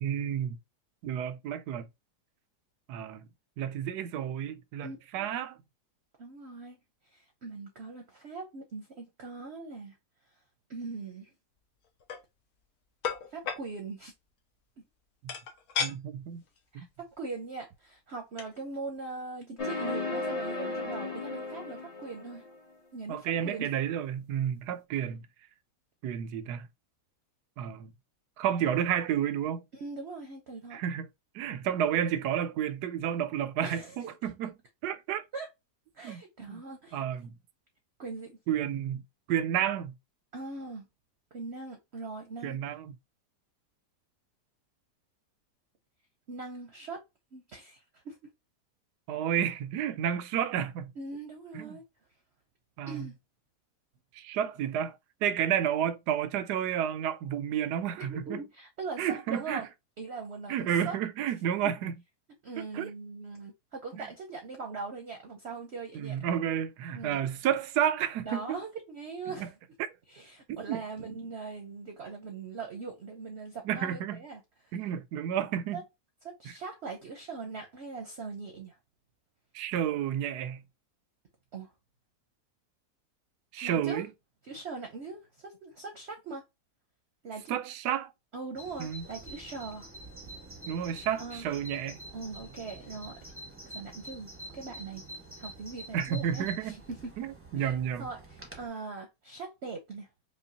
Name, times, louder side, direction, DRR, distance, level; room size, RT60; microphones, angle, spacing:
voice 1, 0.0-0.6 1.0-1.9 2.9-3.3 3.6-5.6 15.2-15.3 15.8-16.4 16.7-16.9 23.1-25.2 26.0-26.7 27.6-27.9 28.4-29.6 30.7-31.1 31.3-34.5 34.8-35.2 36.0-36.6 36.9-37.3 38.5-39.0 39.3-39.9 42.4-43.0 49.1-50.9 51.5-51.8 52.8-53.1 54.1-55.0 55.2-58.4 59.0-59.6 60.5-61.9 62.6-62.9 64.0-64.1 65.9-68.6 69.4-69.5 70.5-70.8 73.6-74.2 74.7-75.8 76.5-76.6 79.5-80.6 83.5-84.1 87.5-88.1 88.8-89.0 90.7-92.0 95.9-96.8 97.2-98.1, right 9 dB, 80° right, 1.1 m, -31 dB
voice 2, 4.8-5.3 6.2-6.8 7.1-10.0 10.7-11.3 13.3-14.1 14.8-14.9 16.7-22.4 22.9-23.7 29.7-30.8 33.6-34.1 35.3-35.5 35.9-37.0 38.0-38.4 40.3-40.9 41.3-42.6 46.3-47.0 47.3-48.2 51.0-51.8 52.9-53.2 58.0-59.7 60.0-61.0 62.4-66.2 66.9-67.2 68.2-69.5 70.1-74.7 75.7-75.8 76.2-78.8 81.5-81.7 83.6-84.0 84.4-86.4 87.2-87.5 88.3-89.9 91.2-91.5 92.1-93.2 93.7-95.0 95.4-97.1 97.6-97.7 98.0-100.1, right 4 dB, 55° right, 0.8 m, -41 dB
sound 1, 11.8-12.2 13.0-13.6 15.3-15.9 16.5-16.6 16.9-17.1 18.1-18.2 18.4-18.6, left 6 dB, 70° left, 1.2 m, -33 dB
sound 2, 19.6-22.6, left 3 dB, 30° left, 0.8 m, -35 dB
Bird vocalization bird call bird song, 88.6-98.7, right 1 dB, 10° right, 0.7 m, -47 dB
5.1 x 2.3 x 2.7 m
omnidirectional pair, 1.7 m